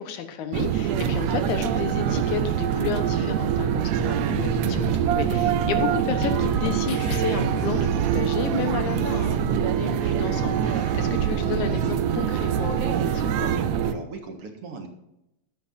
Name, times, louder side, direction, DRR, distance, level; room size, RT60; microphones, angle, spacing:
voice 1, 0.0-13.5, left 7 dB, 85° left, 7 dB, 2.6 m, -32 dB
sound 1, 0.5-13.9, right 9 dB, 75° right, 2.0 m, -24 dB
sound 2, 4.0-7.6, left 3 dB, 60° left, 0.9 m, -35 dB
voice 2, 10.8-11.1 13.8-14.9, right 3 dB, 55° right, 3 dB, 2.3 m, -39 dB
14.5 x 11.0 x 2.7 m, 0.86 s
omnidirectional pair, 3.3 m